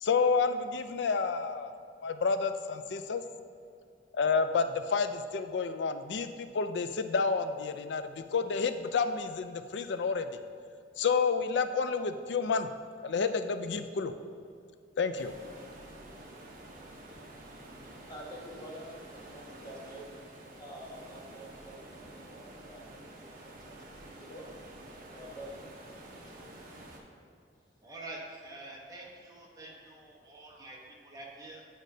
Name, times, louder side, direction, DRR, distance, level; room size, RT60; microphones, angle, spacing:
voice 1, 0.0-1.7 2.0-3.2 4.1-10.4 11.0-12.7 13.0-14.1 15.0-15.3, left 5 dB, 70° left, 9 dB, 0.4 m, -30 dB
sound 1, 15.1-27.0, right 1 dB, 50° right, 0.9 m, -49 dB
voice 2, 17.6-18.9 19.1-20.1 20.6-24.4 25.1-25.6 26.1-26.5, equal, 25° left, -3 dB, 1.1 m, -48 dB
voice 3, 27.8-31.7, right 2 dB, 20° right, -4 dB, 1.0 m, -46 dB
9.2 x 5.1 x 2.7 m, 2.5 s
head